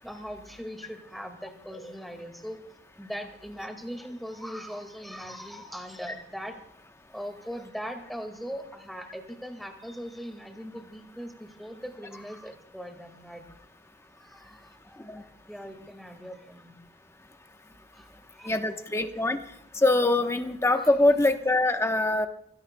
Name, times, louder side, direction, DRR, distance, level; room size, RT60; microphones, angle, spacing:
voice 1, 0.0-2.6 3.0-6.6 7.1-13.5 14.2-16.8 17.7-18.6 20.8-20.9, equal, ahead, 5 dB, 1.9 m, -40 dB
voice 2, 18.4-19.4 19.7-22.3, left 2 dB, 15° left, 6 dB, 1.0 m, -23 dB
29.5 x 17.0 x 2.2 m, 0.75 s
head